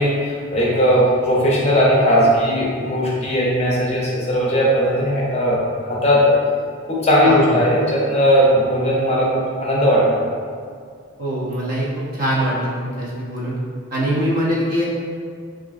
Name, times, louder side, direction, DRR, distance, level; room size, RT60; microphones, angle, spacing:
voice 1, 0.0-6.3 6.9-10.2, equal, 30° left, -5 dB, 0.5 m, -17 dB
voice 2, 7.2-7.6 11.2-13.6 13.9-14.8, equal, 45° right, -6 dB, 0.6 m, -23 dB
3.3 x 2.5 x 2.4 m, 2.1 s
head